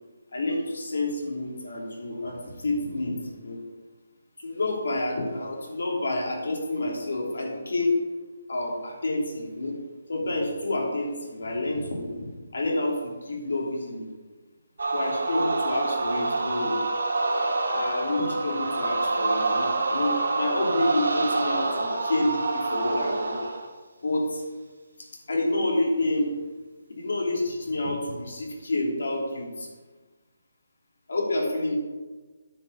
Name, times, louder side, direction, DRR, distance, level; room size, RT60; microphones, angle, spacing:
voice 1, 0.3-3.6 4.4-7.9 8.5-9.8 10.1-14.1 14.9-16.8 17.7-23.4 24.0-24.4 25.3-26.3 26.9-29.7 31.1-31.7, left 2 dB, 75° left, -1 dB, 3.0 m, -28 dB
sound 1, 14.8-23.7, right 3 dB, 85° right, 1.9 m, -27 dB
9.5 x 5.4 x 6.8 m, 1.3 s
hypercardioid pair, 175°, 0 cm